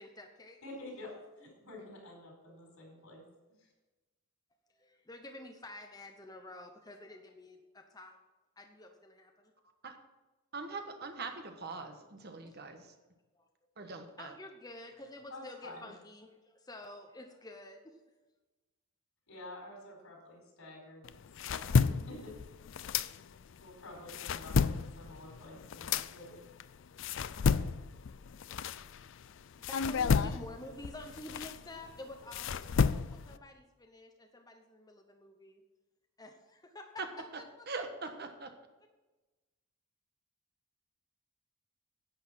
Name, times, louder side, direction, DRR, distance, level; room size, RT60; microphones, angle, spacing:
voice 1, 0.0-0.6 4.7-8.2 8.6-9.5 12.4-12.8 13.3-13.5 14.2-18.0 29.1-35.6 36.2-36.9 37.6-37.7, left 1 dB, 20° left, 3 dB, 0.9 m, -50 dB
voice 2, 0.6-3.2 3.6-3.7 15.3-15.9 19.3-21.0 21.4-22.3 23.6-26.4, left 1 dB, 85° left, 0 dB, 4.8 m, -49 dB
voice 3, 10.5-13.0 13.8-14.3 37.0-38.5, right 4 dB, 50° right, 5 dB, 1.4 m, -42 dB
sound 1, 21.0-23.6 23.9-29.2 29.6-33.4, left 5 dB, 60° left, 0.4 m, -32 dB
10.5 x 8.8 x 5.8 m, 1.2 s
head